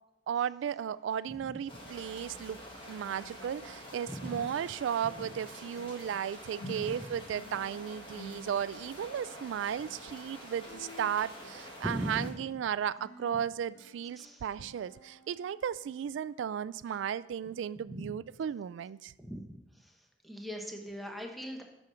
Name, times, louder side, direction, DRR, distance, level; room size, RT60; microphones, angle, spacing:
voice 1, 0.3-2.6 2.9-19.1, right 8 dB, 90° right, 0.3 m, -35 dB
sound 1, 1.0-3.1 3.4-16.5 16.9-17.1 17.6-17.7, equal, 70° left, 1.0 m, -54 dB
sound 2, 1.7-12.3, equal, 25° left, 1.9 m, -48 dB
voice 2, 4.1-4.4 6.6-6.9 11.8-12.2 14.2-14.4 17.9-18.1 19.2-19.5 19.8-19.9 20.2-21.6, equal, ahead, 1.0 m, -39 dB
8.7 x 6.2 x 5.6 m
head